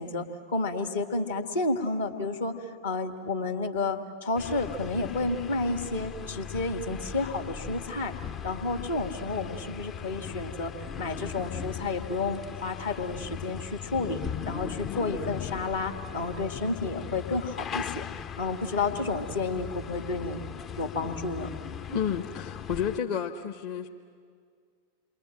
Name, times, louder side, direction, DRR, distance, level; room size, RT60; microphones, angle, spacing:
voice 1, 0.0-2.5 2.8-8.1 8.4-10.7 11.0-18.1 18.4-20.4 20.8-21.5, left 3 dB, 65° left, 6 dB, 1.9 m, -31 dB
sound 1, 4.4-23.0, left 8 dB, 30° left, 0.6 m, -38 dB
voice 2, 21.9-23.9, left 8 dB, 45° left, 3 dB, 1.0 m, -31 dB
28.0 x 22.5 x 7.6 m, 2.1 s
figure-of-eight pair, 90°, 0 cm